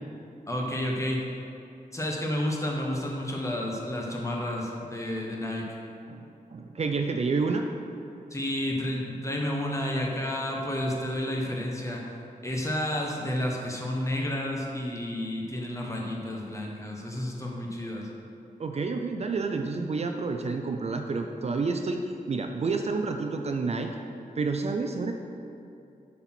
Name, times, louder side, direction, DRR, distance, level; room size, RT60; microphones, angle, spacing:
voice 1, 0.5-1.2 1.9-5.7 8.3-12.0 12.4-18.1, left 1 dB, 20° left, -1 dB, 1.2 m, -31 dB
voice 2, 6.5-7.7 18.6-23.9 24.4-25.1, right 4 dB, 45° right, 4 dB, 0.5 m, -29 dB
7.8 x 4.3 x 6.1 m, 2.7 s
wide cardioid pair, 105°, 15 cm